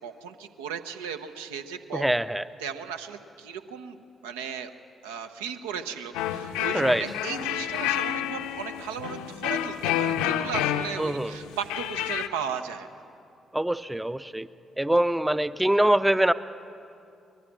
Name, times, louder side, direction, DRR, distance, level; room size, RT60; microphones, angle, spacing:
voice 1, 0.0-2.0 2.6-4.7 5.0-13.0, right 7 dB, 75° right, 7 dB, 1.0 m, -36 dB
voice 2, 1.9-2.4 6.7-7.0 11.0-11.4 13.5-14.5 14.8-16.3, right 1 dB, 10° right, 15 dB, 0.6 m, -24 dB
sound 1, 6.1-12.3, left 11 dB, 70° left, 0.7 m, -29 dB
24.0 x 20.5 x 6.1 m, 2.6 s
figure-of-eight pair, 40°, 0 cm